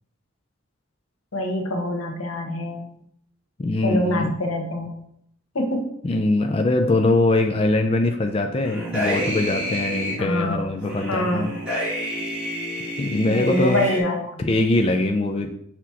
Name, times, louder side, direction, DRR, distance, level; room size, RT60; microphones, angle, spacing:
voice 1, 1.3-2.9 3.8-5.0 5.5-5.9 10.2-10.7 11.1-11.5 13.3-14.4, left 1 dB, 85° left, 2 dB, 1.2 m, -25 dB
voice 2, 3.6-4.3 6.0-11.5 13.0-13.8 14.4-15.5, left 2 dB, 25° left, 4 dB, 0.4 m, -22 dB
sound 1, 8.6-10.2 10.8-14.0, equal, 5° right, 1.8 m, -29 dB
6.1 x 2.9 x 5.6 m, 0.70 s
head